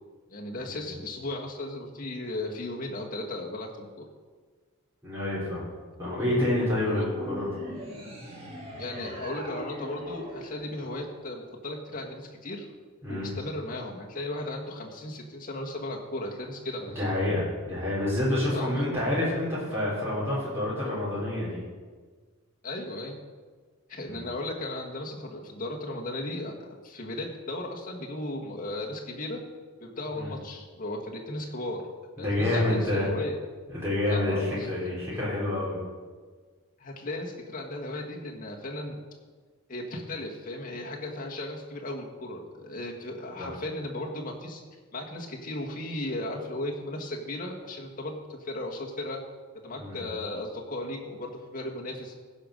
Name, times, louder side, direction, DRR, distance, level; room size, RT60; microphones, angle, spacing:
voice 1, 0.3-4.1 6.8-7.0 8.8-12.6 13.1-16.9 18.5-18.7 22.6-23.2 23.9-26.5 26.8-29.4 29.8-31.9 32.2-33.4 34.1-34.7 36.8-38.9 39.7-44.6 44.9-49.2 49.5-52.1, left 1 dB, 40° left, 0 dB, 1.6 m, -36 dB
voice 2, 5.0-5.7 6.0-7.5 13.0-13.3 17.0-21.6 24.0-24.2 30.1-30.3 32.2-33.1 33.7-35.8 43.4-43.5 49.8-50.0, left 1 dB, 10° right, -8 dB, 3.5 m, -28 dB
sound 1, 7.1-11.6, equal, 25° right, 2.0 m, -40 dB
15.5 x 5.3 x 6.4 m, 1.5 s
head